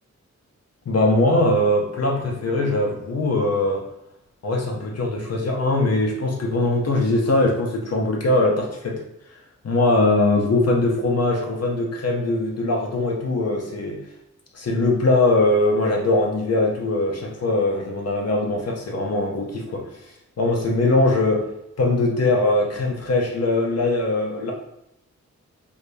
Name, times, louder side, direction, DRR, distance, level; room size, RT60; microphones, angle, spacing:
voice 1, 0.9-3.8 4.4-9.0 9.6-14.0 14.5-19.8 20.4-21.5 21.8-24.5, left 2 dB, 55° left, 0 dB, 0.6 m, -21 dB
4.8 x 2.2 x 2.5 m, 0.81 s
wide cardioid pair, 105°, 30 cm